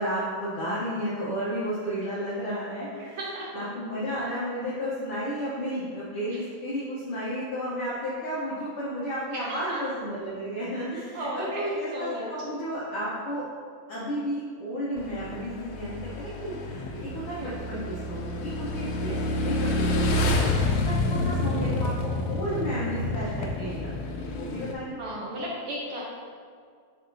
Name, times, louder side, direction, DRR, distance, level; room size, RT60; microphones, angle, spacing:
voice 1, 0.0-3.2 3.5-13.4 13.9-20.3 20.6-25.0, equal, 65° left, -8 dB, 1.6 m, -33 dB
voice 2, 3.0-3.6 6.3-6.4 9.3-9.8 11.1-12.3 17.4-17.6 19.0-19.2 25.0-26.0, equal, 70° right, -4 dB, 1.4 m, -35 dB
Motorcycle / Engine, 15.0-24.7, left 2 dB, 85° left, 1.3 m, -28 dB
10.0 x 4.1 x 2.7 m, 2.1 s
omnidirectional pair, 3.3 m